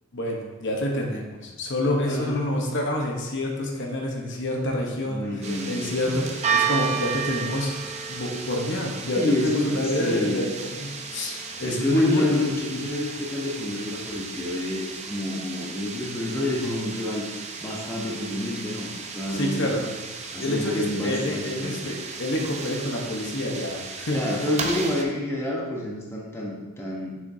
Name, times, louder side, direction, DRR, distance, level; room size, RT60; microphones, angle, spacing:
voice 1, 0.1-12.4 19.3-19.8 20.4-24.4, left 1 dB, 55° left, 0 dB, 1.0 m, -27 dB
voice 2, 2.0-2.5 5.0-6.2 9.2-10.4 11.6-17.3 17.6-19.8 20.3-21.9 24.1-27.2, left 1 dB, 10° left, -4 dB, 0.9 m, -29 dB
sound 1, 5.4-25.0, right 5 dB, 30° right, 0.5 m, -34 dB
7.2 x 6.1 x 2.7 m, 1.2 s
head